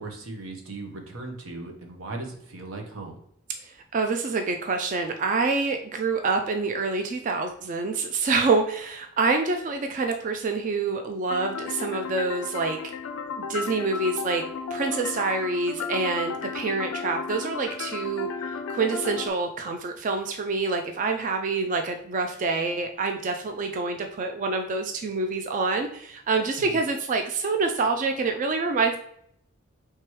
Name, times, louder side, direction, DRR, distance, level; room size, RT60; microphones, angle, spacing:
voice 1, 0.0-3.2 26.6-26.8, right 2 dB, 85° right, 2 dB, 0.9 m, -38 dB
voice 2, 3.6-12.8 13.4-14.4 14.7-18.3 18.7-29.0, right 3 dB, 40° right, 4 dB, 0.3 m, -26 dB
sound 1, 11.3-19.3, left 5 dB, 80° left, 0.4 m, -34 dB
4.6 x 3.3 x 3.1 m, 0.71 s
head